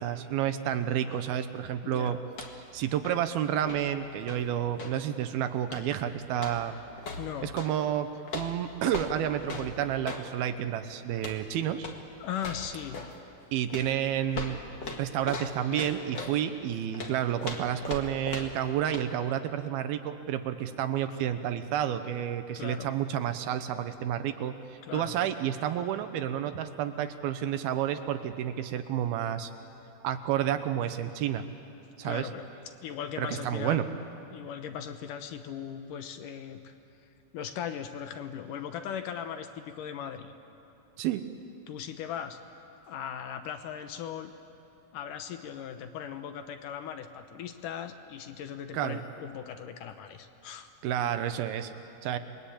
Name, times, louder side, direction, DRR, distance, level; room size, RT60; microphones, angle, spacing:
voice 1, 0.0-2.2 2.7-6.8 7.4-8.1 8.3-11.9 13.5-14.6 15.0-24.6 24.9-29.5 30.0-31.5 32.0-32.3 33.2-33.9 41.0-41.2 48.7-49.0 50.8-51.7 52.0-52.2, right 10 dB, 75° right, 9 dB, 2.6 m, -30 dB
voice 2, 1.8-2.2 7.2-7.6 12.2-13.0 22.6-22.9 24.8-25.2 32.0-32.4 32.8-33.8 34.3-36.7 37.3-40.3 41.7-42.4 42.9-44.3 44.9-50.7, left 8 dB, 70° left, 8 dB, 2.1 m, -38 dB
sound 1, 2.3-2.7 3.0-5.0 5.6-6.0 6.3-7.7 8.3-10.3 11.1-11.5 11.8-12.0 12.4-13.2 13.7-16.4 16.9-18.7 18.9-19.1, left 3 dB, 40° left, 1.6 m, -39 dB
29.0 x 22.0 x 8.6 m, 2.8 s
omnidirectional pair, 4.8 m